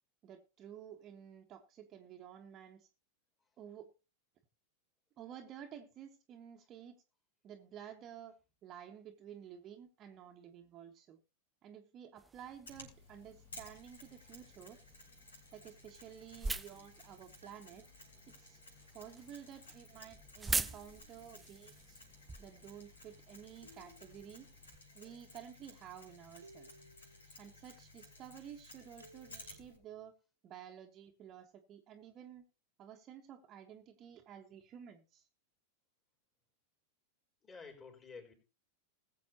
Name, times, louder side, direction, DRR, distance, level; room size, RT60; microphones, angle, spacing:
voice 1, 0.2-2.9 3.6-3.9 5.2-7.0 7.4-8.3 8.6-11.2 11.6-14.8 15.5-17.8 18.3-18.6 18.9-22.0 22.4-24.5 24.9-26.7 27.4-30.1 30.4-32.4 32.8-35.2, right 9 dB, 30° right, 1.5 m, -52 dB
sound 1, 12.2-24.8, right 3 dB, 10° right, 0.6 m, -45 dB
Mechanisms, 12.7-29.8, left 2 dB, 75° left, 6.1 m, -57 dB
sound 2, 17.4-18.3 20.6-21.5 23.6-24.5 26.4-27.3 29.0-29.9, right 1 dB, 80° right, 1.6 m, -62 dB
voice 2, 24.9-25.2 27.3-27.6 37.4-38.3, left 5 dB, 20° left, 4.5 m, -53 dB
20.5 x 7.6 x 2.9 m
figure-of-eight pair, 90°, 0 cm